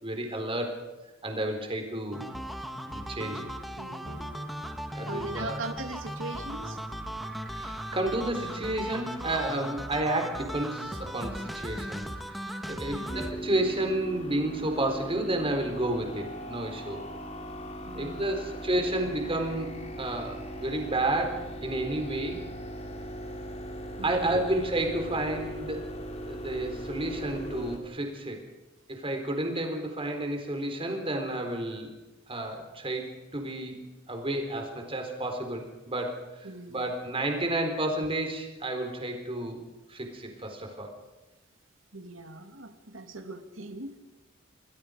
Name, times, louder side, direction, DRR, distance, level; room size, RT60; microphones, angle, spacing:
voice 1, 0.0-0.7 1.2-2.3 2.8-3.4 4.9-5.6 7.5-17.0 18.0-19.7 20.0-22.5 24.0-25.8 26.3-28.4 28.9-31.9 32.3-33.8 34.1-36.2 36.7-39.6 39.9-40.9, right 1 dB, 30° right, 4 dB, 4.2 m, -31 dB
sound 1, 2.1-13.3, equal, ahead, 1.5 m, -37 dB
voice 2, 3.2-3.5 3.8-4.6 5.1-6.8 12.7-13.1 17.8-18.3 24.0-24.4 36.4-36.9 41.9-44.0, right 2 dB, 85° right, 6 dB, 2.6 m, -40 dB
sound 2, 13.1-27.8, right 1 dB, 35° left, 2.8 m, -39 dB
28.5 x 21.5 x 5.2 m, 1.1 s
head